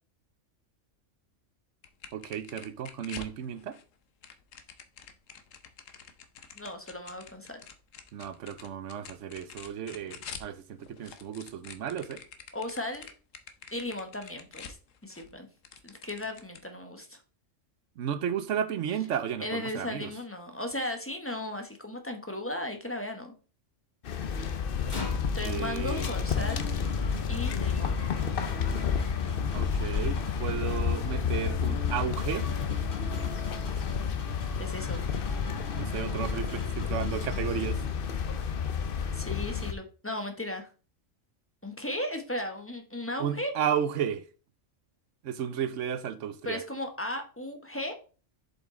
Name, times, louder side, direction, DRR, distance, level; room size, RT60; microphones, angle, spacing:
sound 1, 1.8-3.8 4.2-10.5 10.8-15.3 15.6-16.6, left 7 dB, 80° left, 1.2 m, -46 dB
voice 1, 2.1-3.8 8.1-12.2 18.0-20.1 25.4-26.1 29.5-32.5 35.8-37.8 43.2-44.2 45.2-46.6, right 8 dB, 75° right, 1.1 m, -33 dB
voice 2, 6.5-7.6 12.5-13.1 13.7-14.8 15.0-15.5 15.8-17.2 19.4-23.3 25.3-26.6 27.3-27.9 34.6-35.0 39.1-40.7 41.6-43.5 46.4-48.0, left 1 dB, 10° left, 1.1 m, -36 dB
sound 2, 24.0-39.7, left 6 dB, 55° left, 0.8 m, -30 dB
sound 3, 24.9-38.0, left 3 dB, 35° left, 1.8 m, -40 dB
7.2 x 5.4 x 3.8 m
omnidirectional pair, 1.3 m